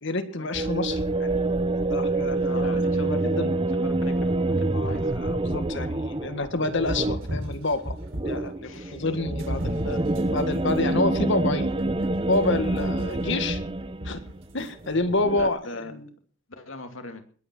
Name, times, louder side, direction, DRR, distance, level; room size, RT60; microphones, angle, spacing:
voice 1, 0.0-1.3 1.9-2.8 3.0-3.5 4.7-8.0 8.3-10.0 10.3-11.7 12.3-13.6 14.0-14.2 14.5-16.0, left 2 dB, 65° left, 9 dB, 1.9 m, -28 dB
sound 1, 0.5-14.4 14.8-15.5, right 2 dB, 25° right, 0.8 m, -27 dB
voice 2, 2.4-3.3 3.8-5.1 8.6-9.1 15.4-15.9 16.5-17.2, left 2 dB, 85° left, 6 dB, 2.5 m, -41 dB
sound 2, 6.8-8.5 9.3-14.7, equal, 75° right, 3.6 m, -36 dB
21.0 x 8.6 x 6.2 m, 0.44 s
head